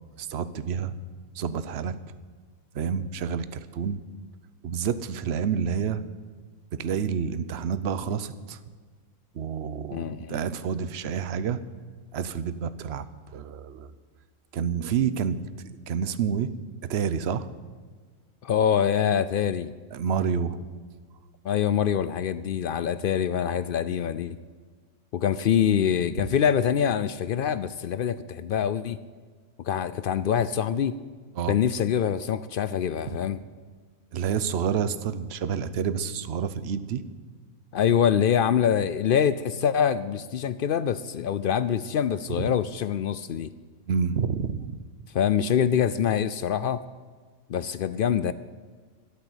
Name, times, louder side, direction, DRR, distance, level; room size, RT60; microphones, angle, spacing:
voice 1, 0.2-0.9 1.3-2.0 2.7-4.0 4.6-6.0 6.7-8.6 9.3-11.6 12.1-13.1 13.3-13.9 14.5-15.4 15.9-16.5 16.8-17.5 19.9-20.6 31.4-31.6 33.1-33.2 34.1-37.0 42.4-42.5 43.9-44.8, right 7 dB, 55° right, 14 dB, 0.9 m, -28 dB
voice 2, 9.9-10.4 18.4-19.7 21.4-24.4 25.1-29.0 29.6-31.0 31.5-33.4 37.7-43.5 45.1-46.8 47.5-48.3, left 8 dB, 75° left, 15 dB, 0.5 m, -25 dB
13.0 x 12.0 x 8.0 m, 1.5 s
omnidirectional pair, 1.5 m